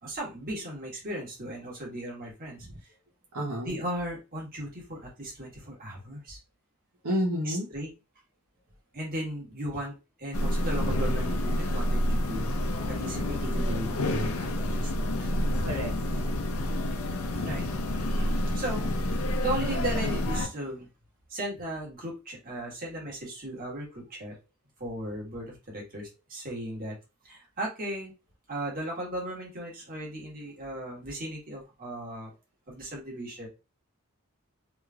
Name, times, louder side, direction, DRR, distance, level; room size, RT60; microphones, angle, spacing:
voice 1, 0.0-2.7 3.6-6.4 7.4-7.9 8.9-12.5 12.8-14.9 15.2-15.3 17.4-17.7 18.2-20.9 21.3-24.3 24.8-27.0 27.2-28.1 28.5-32.3 32.7-33.5, right 1 dB, 45° right, -3 dB, 1.5 m, -36 dB
voice 2, 3.3-3.8 7.0-7.7 15.6-16.3, equal, 70° right, -2 dB, 0.8 m, -31 dB
sound 1, 10.3-20.5, left 1 dB, 75° left, 0.6 m, -28 dB
3.2 x 3.1 x 2.3 m, 0.27 s
head